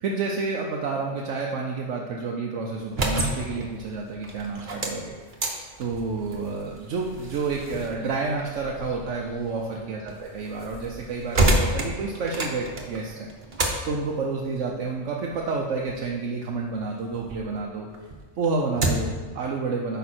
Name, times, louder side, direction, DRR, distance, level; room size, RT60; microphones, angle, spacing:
voice 1, 0.0-5.1 5.8-13.3 13.8-17.9 18.4-20.0, right 4 dB, 85° right, -1 dB, 1.1 m, -29 dB
sound 1, 2.7-17.5 17.9-19.2, right 1 dB, 45° right, 1.1 m, -30 dB
9.2 x 5.6 x 4.3 m, 1.4 s
omnidirectional pair, 1.2 m